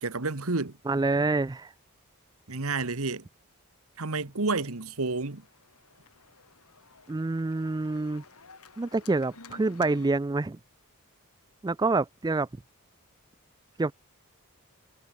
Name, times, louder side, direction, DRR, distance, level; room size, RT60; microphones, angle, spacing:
voice 1, 0.0-0.7 2.5-3.2 4.0-5.4, right 3 dB, 70° right, 1.5 m, -30 dB
voice 2, 0.9-1.7 7.1-8.2 8.8-10.6 11.6-12.5 13.8-13.9, right 3 dB, 20° right, 0.3 m, -27 dB
Organ, 4.3-10.1, left 4 dB, 85° left, 5.2 m, -54 dB
head